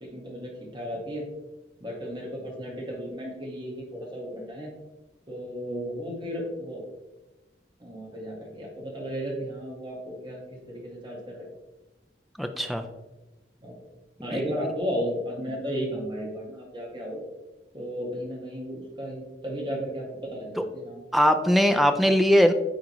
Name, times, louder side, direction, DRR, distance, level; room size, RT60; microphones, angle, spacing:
voice 1, 0.0-1.2 1.8-4.7 5.3-6.8 7.8-10.4 10.7-11.5 13.6-13.8 14.2-17.2 17.7-20.0 20.3-21.0, equal, 25° right, -2 dB, 1.6 m, -34 dB
voice 2, 12.4-12.9 14.3-14.5 20.6-20.7 21.1-22.5, equal, ahead, 6 dB, 0.4 m, -21 dB
9.6 x 3.8 x 3.1 m, 1.1 s
head